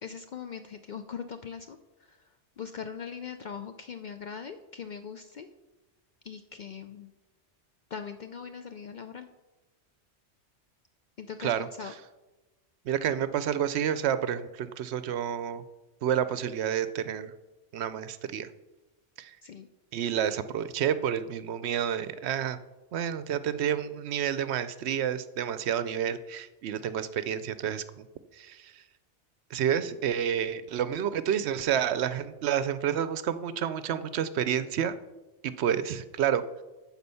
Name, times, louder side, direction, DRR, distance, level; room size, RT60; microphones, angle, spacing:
voice 1, 0.0-2.3 2.6-5.5 6.2-7.1 7.9-9.3 11.2-11.9 19.4-19.7, left 7 dB, 60° left, 8 dB, 0.5 m, -41 dB
voice 2, 12.9-15.6 16.0-17.3 17.7-18.5 19.2-19.4 19.9-22.6 22.9-28.1 28.3-28.8 29.5-34.9 35.4-36.4, right 9 dB, 70° right, 13 dB, 0.8 m, -29 dB
9.5 x 4.4 x 6.9 m, 1.1 s
omnidirectional pair, 1.2 m